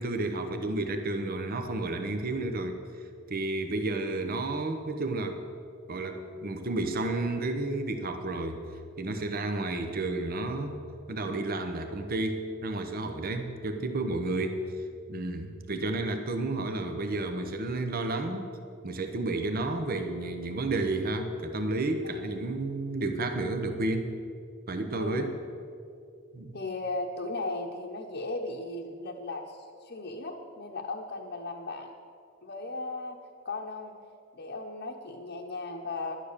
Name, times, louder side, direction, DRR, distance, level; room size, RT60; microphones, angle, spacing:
voice 1, 0.0-5.4 5.9-8.6 9.0-10.8 11.1-18.5 18.8-24.1 24.7-25.3 26.3-26.6, right 2 dB, 45° right, 6 dB, 0.9 m, -31 dB
voice 2, 24.9-25.3 26.5-31.9 32.4-33.2 33.4-33.9 34.3-36.2, left 2 dB, 55° left, -1 dB, 0.9 m, -36 dB
12.0 x 9.4 x 6.7 m, 2.5 s
head